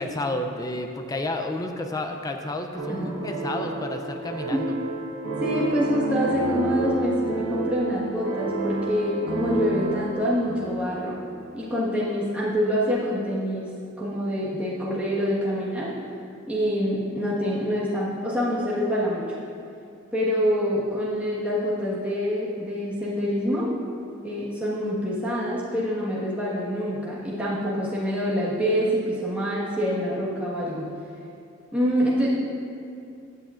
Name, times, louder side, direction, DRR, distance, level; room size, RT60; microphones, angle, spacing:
voice 1, 0.0-4.8, left 2 dB, 20° left, 5 dB, 0.4 m, -31 dB
sound 1, 2.7-11.8, right 2 dB, 80° right, 1.5 m, -30 dB
voice 2, 5.4-11.2 11.5-13.7 14.0-15.9 16.5-19.3 20.1-23.7 24.2-30.9 31.7-32.3, equal, 5° right, -9 dB, 1.4 m, -26 dB
16.0 x 8.3 x 2.5 m, 2.5 s
head